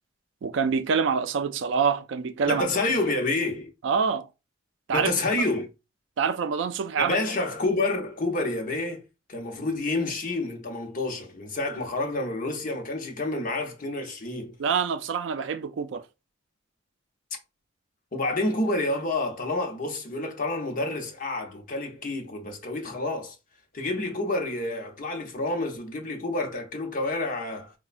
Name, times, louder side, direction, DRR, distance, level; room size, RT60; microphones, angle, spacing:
voice 1, 0.4-2.7 3.8-4.3 4.9-5.4 6.2-7.2 14.6-16.1, right 6 dB, 70° right, 0.3 m, -26 dB
voice 2, 2.5-3.7 4.9-5.7 7.0-9.0 9.3-14.6 18.1-23.4 23.7-27.7, left 2 dB, 45° left, 0.7 m, -29 dB
4.1 x 2.1 x 2.4 m
head